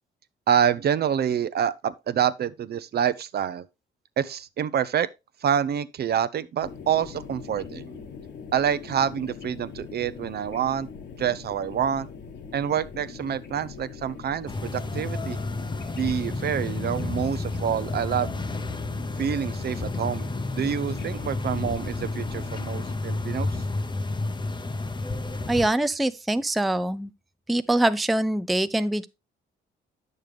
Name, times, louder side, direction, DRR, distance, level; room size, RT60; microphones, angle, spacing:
voice 1, 0.5-3.7 4.2-5.1 5.4-8.0 8.5-10.9 11.2-12.1 12.5-15.4 16.0-18.4 19.2-23.5, right 9 dB, 55° right, 0.6 m, -27 dB
sound 1, 6.6-22.9, left 6 dB, 60° left, 1.4 m, -42 dB
sound 2, 14.5-25.7, left 2 dB, 25° left, 0.8 m, -31 dB
voice 2, 25.5-27.1 27.5-29.1, right 1 dB, ahead, 0.4 m, -24 dB
9.0 x 6.7 x 3.3 m
cardioid pair, 90°, 20 cm